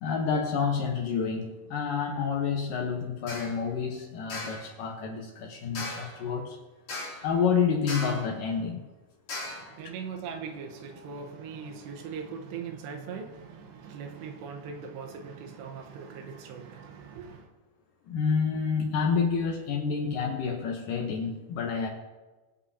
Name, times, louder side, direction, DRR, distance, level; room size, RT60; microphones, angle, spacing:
voice 1, 0.0-6.6 7.2-8.8 18.1-21.9, left 6 dB, 70° left, 2.3 m, -29 dB
sound 1, 3.3-3.6 4.3-4.7 5.7-6.2 6.9-7.3 7.9-8.3 9.3-9.7, left 2 dB, 45° left, 3.7 m, -37 dB
voice 2, 9.4-17.5, right 6 dB, 85° right, 3.3 m, -40 dB
21.5 x 7.7 x 2.8 m
omnidirectional pair, 4.8 m